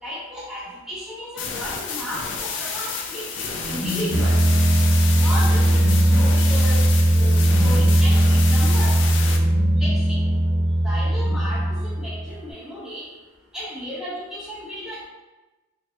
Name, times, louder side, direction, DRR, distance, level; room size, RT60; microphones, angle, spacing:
voice 1, 0.0-4.4 5.2-6.9 7.1-8.9 9.8-10.2 10.8-13.1 13.5-15.0, equal, 5° right, -8 dB, 0.8 m, -34 dB
sound 1, 1.4-9.4, left 5 dB, 60° left, 0.4 m, -30 dB
sound 2, 3.6-12.4, right 1 dB, 30° right, 0.4 m, -18 dB
2.9 x 2.8 x 3.1 m, 1.1 s
head